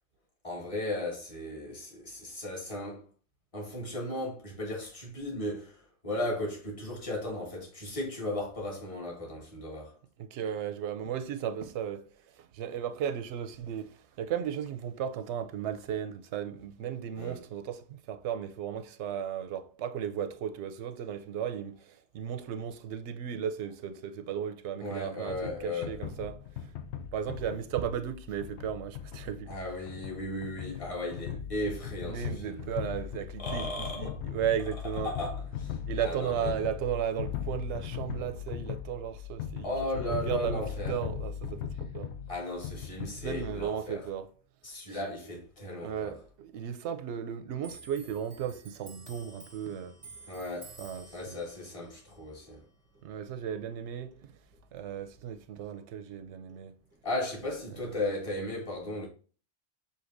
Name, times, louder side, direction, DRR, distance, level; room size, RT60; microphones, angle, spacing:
voice 1, 0.4-3.1 3.5-9.9 17.2-17.4 24.8-26.0 29.5-32.7 33.4-34.2 35.0-36.5 39.6-41.0 42.3-44.1 44.6-46.2 50.3-50.8 51.1-52.6 57.0-59.1, left 1 dB, 30° left, 1.6 m, -36 dB
voice 2, 10.2-12.0 12.4-25.4 25.6-26.4 27.1-29.5 30.2-30.3 31.3-31.4 32.0-35.1 35.9-39.7 39.9-42.1 43.2-44.3 44.9-45.0 45.8-50.0 50.8-51.4 53.0-54.3 54.7-56.7, right 9 dB, 90° right, 0.9 m, -35 dB
sound 1, 25.3-43.7, left 9 dB, 85° left, 0.9 m, -39 dB
Clock, 47.6-54.6 54.9-56.2 56.5-57.3, right 3 dB, 15° right, 0.7 m, -53 dB
6.5 x 2.7 x 2.5 m
omnidirectional pair, 1.1 m